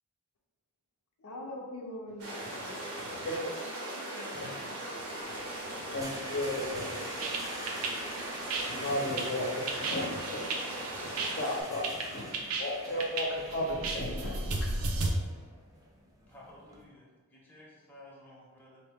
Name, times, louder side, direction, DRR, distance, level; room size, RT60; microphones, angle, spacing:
voice 1, 1.2-3.4 4.1-4.6, left 1 dB, 85° left, 0.6 m, -44 dB
sound 1, 2.2-11.6, right 1 dB, 90° right, 1.2 m, -39 dB
voice 2, 5.0-7.9 8.6-10.6 10.8-14.7 15.0-15.4, left 1 dB, 50° left, 0.7 m, -36 dB
sound 2, 5.2-16.8, right 1 dB, 15° right, 0.5 m, -47 dB
sound 3, 7.2-15.1, right 3 dB, 70° right, 0.6 m, -34 dB
voice 3, 16.3-18.8, left 1 dB, 10° left, 0.8 m, -54 dB
4.0 x 2.8 x 3.5 m
head